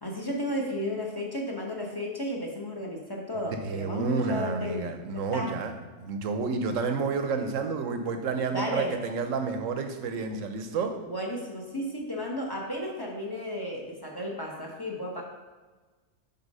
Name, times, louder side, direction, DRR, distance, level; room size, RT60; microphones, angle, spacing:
voice 1, 0.0-4.9 5.1-5.6 8.5-9.0 11.0-15.2, equal, 20° left, -1 dB, 1.0 m, -33 dB
voice 2, 3.5-11.0, right 4 dB, 80° right, 6 dB, 1.1 m, -30 dB
6.9 x 4.2 x 5.4 m, 1.3 s
omnidirectional pair, 1.3 m